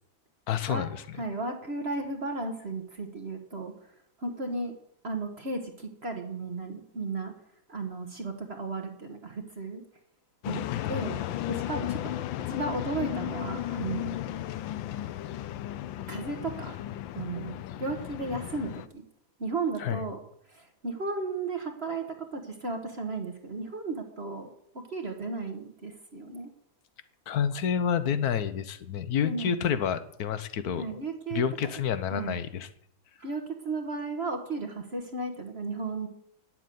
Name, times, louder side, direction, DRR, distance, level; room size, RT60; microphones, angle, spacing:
voice 1, 0.5-1.0 10.7-11.3 19.8-20.0 27.3-31.0 31.3-32.7, left 8 dB, 60° left, 13 dB, 1.2 m, -29 dB
voice 2, 1.2-3.7 4.2-4.7 5.0-7.3 7.7-9.8 10.4-11.2 11.5-12.1 12.4-14.1 16.1-16.8 17.1-19.0 19.4-20.2 20.5-24.5 24.9-26.5 29.2-29.6 30.8-31.8 32.1-32.4 33.2-36.1, right 3 dB, 40° right, 5 dB, 1.3 m, -34 dB
sound 1, 10.4-18.9, left 13 dB, 85° left, 1.4 m, -35 dB
9.9 x 7.7 x 9.2 m, 0.71 s
omnidirectional pair, 2.1 m